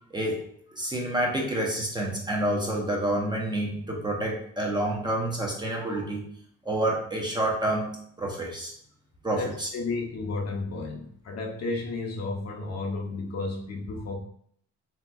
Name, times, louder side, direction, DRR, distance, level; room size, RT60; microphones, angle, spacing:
voice 1, 0.7-6.3 6.6-8.7 9.2-9.7, right 1 dB, 15° right, -1 dB, 0.7 m, -28 dB
voice 2, 9.7-14.2, left 3 dB, 55° left, 0 dB, 0.7 m, -32 dB
3.1 x 2.8 x 2.3 m, 0.64 s
cardioid pair, 90°, 30 cm